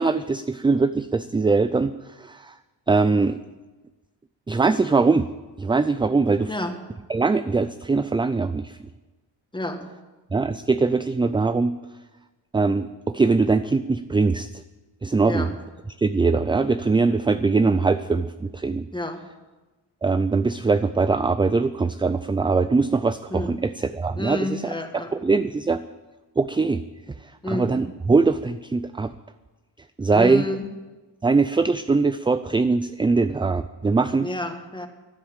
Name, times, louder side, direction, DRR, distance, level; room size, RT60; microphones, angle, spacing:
voice 1, 0.0-2.5 2.9-3.4 4.5-5.3 5.6-6.5 7.1-8.8 10.3-11.7 12.5-14.6 15.0-15.5 16.0-18.9 20.0-24.6 25.2-25.8 26.4-26.8 27.5-29.1 30.0-30.5 31.2-34.3, right 4 dB, 10° right, 12 dB, 0.4 m, -21 dB
voice 2, 9.5-9.8 15.2-15.6 18.9-19.2 23.3-23.6 24.2-25.1 27.4-27.7 30.1-30.7 34.2-34.9, left 1 dB, 10° left, 5 dB, 2.0 m, -29 dB
12.5 x 10.5 x 9.0 m, 1.2 s
cardioid pair, 100°, 44 cm